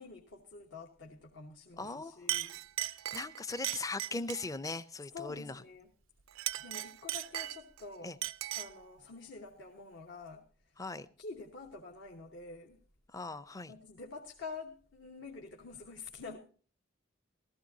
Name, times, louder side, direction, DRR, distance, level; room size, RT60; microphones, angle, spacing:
voice 1, 0.0-2.6 5.1-5.9 6.6-8.2 8.6-10.7 11.2-12.8 13.7-16.4, left 4 dB, 65° left, 1.2 m, -47 dB
voice 2, 1.8-2.2 3.1-5.6 8.0-8.2 10.8-11.1 13.1-13.7, left 3 dB, 15° left, 0.5 m, -39 dB
Chink clink, 1.8-2.0 2.3-4.5 6.3-7.8 8.2-8.8, right 14 dB, 85° right, 0.4 m, -38 dB
15.5 x 14.5 x 2.7 m
head